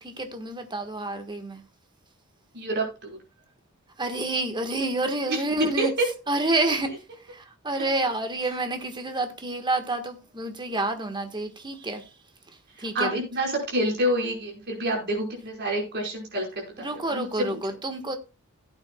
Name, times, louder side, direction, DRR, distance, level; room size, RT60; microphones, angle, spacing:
voice 1, 0.0-1.6 4.0-5.9 6.3-6.9 7.3-12.0 12.8-13.2 16.8-18.2, right 2 dB, 20° right, 1.5 m, -28 dB
voice 2, 2.5-3.2 5.3-6.1 12.9-17.5, right 1 dB, 50° right, 5.0 m, -28 dB
16.5 x 8.9 x 2.3 m
head